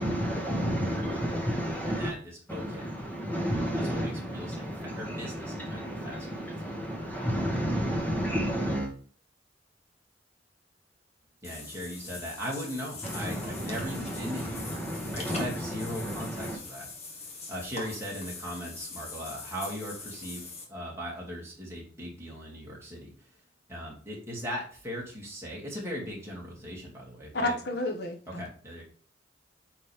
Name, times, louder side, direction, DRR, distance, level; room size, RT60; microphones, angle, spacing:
voice 1, 0.0-2.1 2.5-8.9 13.0-16.6, equal, 10° left, 0 dB, 1.9 m, -32 dB
voice 2, 2.5-2.9 3.9-4.7 5.0-6.7 11.4-14.8 15.1-16.9 17.5-23.1 23.7-27.5 28.3-28.8, equal, 15° right, -4 dB, 2.5 m, -38 dB
Water / Bathtub (filling or washing), 11.4-20.6, left 3 dB, 35° left, 1.4 m, -43 dB
voice 3, 27.3-28.5, left 2 dB, 60° left, 4 dB, 1.1 m, -31 dB
8.5 x 4.1 x 3.5 m, 0.42 s
head